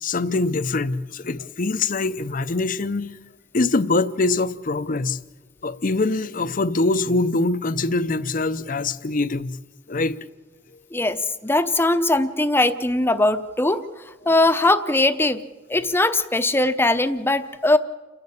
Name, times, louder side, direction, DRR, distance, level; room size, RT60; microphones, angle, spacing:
voice 1, 0.0-3.1 3.5-5.2 5.6-9.6 9.9-10.2, left 3 dB, 45° left, 0.7 m, -23 dB
voice 2, 10.9-13.8 14.3-15.4 15.7-17.8, left 2 dB, 10° left, 0.8 m, -20 dB
29.5 x 10.5 x 8.6 m
head